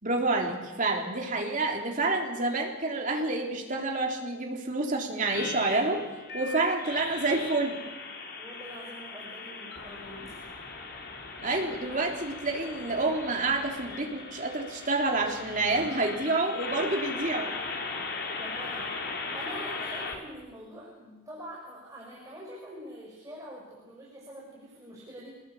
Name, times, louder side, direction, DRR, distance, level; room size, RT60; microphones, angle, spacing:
voice 1, 0.0-6.0 6.3-7.8 11.4-17.5, right 2 dB, 35° right, 1 dB, 3.7 m, -28 dB
sound 1, 5.3-20.2, left 4 dB, 50° left, 3.8 m, -38 dB
voice 2, 8.4-10.5 18.4-19.0 19.3-25.4, equal, 15° right, -4 dB, 6.4 m, -45 dB
26.0 x 19.5 x 8.7 m, 1.1 s
head